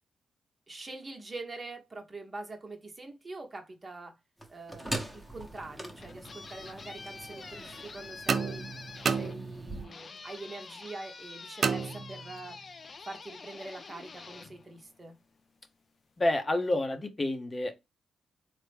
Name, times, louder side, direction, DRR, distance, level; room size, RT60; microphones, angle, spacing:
voice 1, 0.7-4.2 4.5-8.7 9.1-12.6 13.1-15.2, right 2 dB, 35° right, 0.9 m, -44 dB
sound 1, 4.4-9.9, right 1 dB, ahead, 1.0 m, -42 dB
sound 2, 5.7-15.4, left 4 dB, 50° left, 0.4 m, -47 dB
sound 3, 8.3-9.9 11.6-12.6, right 5 dB, 55° right, 0.4 m, -31 dB
voice 2, 16.2-17.8, left 1 dB, 35° left, 0.7 m, -29 dB
3.3 x 2.0 x 3.2 m
supercardioid pair, 50°, 0 cm